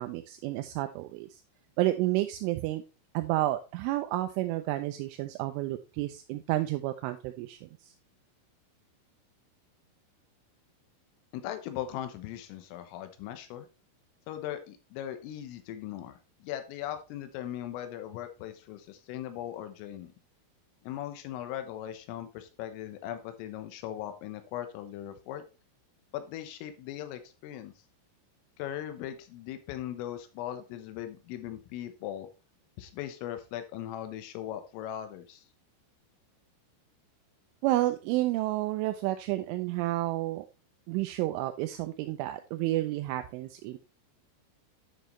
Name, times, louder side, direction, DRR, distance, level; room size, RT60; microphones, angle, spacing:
voice 1, 0.0-1.4 1.8-2.8 3.1-7.9 37.6-40.5 40.9-43.8, right 16 dB, 85° right, 8 dB, 3.0 m, -30 dB
voice 2, 11.3-13.7 14.3-20.1 20.9-25.4 26.1-27.7 28.6-32.3 32.8-35.4, left 11 dB, 85° left, 9 dB, 3.7 m, -39 dB
10.5 x 6.3 x 3.1 m, 0.31 s
omnidirectional pair, 5.7 m